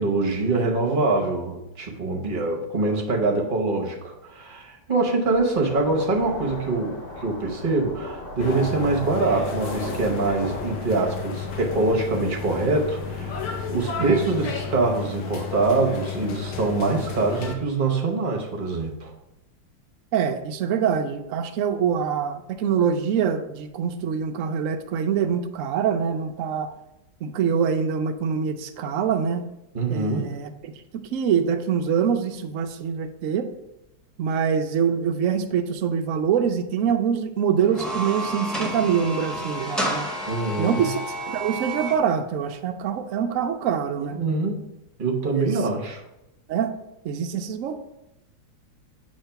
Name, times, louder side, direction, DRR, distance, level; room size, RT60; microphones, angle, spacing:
voice 1, 0.0-19.1 29.7-30.4 40.3-40.9 44.0-44.6 45.0-46.0, right 3 dB, 40° right, 0 dB, 0.7 m, -24 dB
sound 1, 5.3-14.7, left 2 dB, 35° left, 1.4 m, -37 dB
sound 2, 8.4-17.6, left 5 dB, 60° left, 1.2 m, -32 dB
voice 2, 20.1-26.7 27.2-29.5 29.9-33.5 34.2-40.1 40.6-41.0 41.3-44.2 45.3-45.5 46.5-46.7 47.0-47.8, right 7 dB, 80° right, 6 dB, 0.7 m, -24 dB
sound 3, 37.6-42.0, right 1 dB, ahead, 0.6 m, -30 dB
7.2 x 2.9 x 5.7 m, 0.90 s
omnidirectional pair, 2.1 m